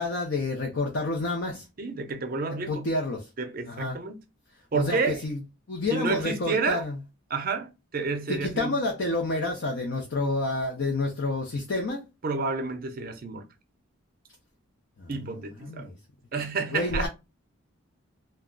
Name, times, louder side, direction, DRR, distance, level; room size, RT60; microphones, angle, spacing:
voice 1, 0.0-1.7 2.7-3.2 3.7-4.0 4.7-5.4 5.7-6.9 8.3-12.0 15.0-16.0 16.7-17.1, left 2 dB, 55° left, 0.5 m, -29 dB
voice 2, 1.8-2.9 3.4-4.2 4.7-5.2 5.9-6.9 7.3-8.8 12.2-13.5 15.1-15.9 16.3-17.1, right 4 dB, 40° right, 0.5 m, -30 dB
2.3 x 2.1 x 3.6 m
head